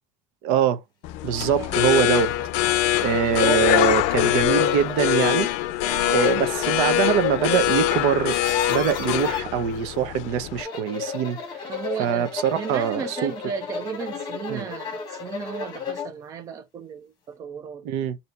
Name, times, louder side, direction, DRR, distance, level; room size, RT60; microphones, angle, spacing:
voice 1, 0.4-0.8 1.2-2.3 3.0-5.5 6.0-8.4 8.7-11.6 12.0-13.3 14.5-14.7 17.8-18.2, right 9 dB, 80° right, 0.7 m, -23 dB
sound 1, 1.0-10.6, left 13 dB, 70° left, 0.5 m, -23 dB
sound 2, 1.4-1.5 2.0-2.1 2.7-2.8 3.0-3.7 4.5-5.3 5.8-7.9 8.1-9.4 10.4-16.1, left 6 dB, 35° left, 1.1 m, -32 dB
voice 2, 11.7-17.9, right 6 dB, 25° right, 0.5 m, -35 dB
4.1 x 2.8 x 3.3 m
cardioid pair, 175°, 13 cm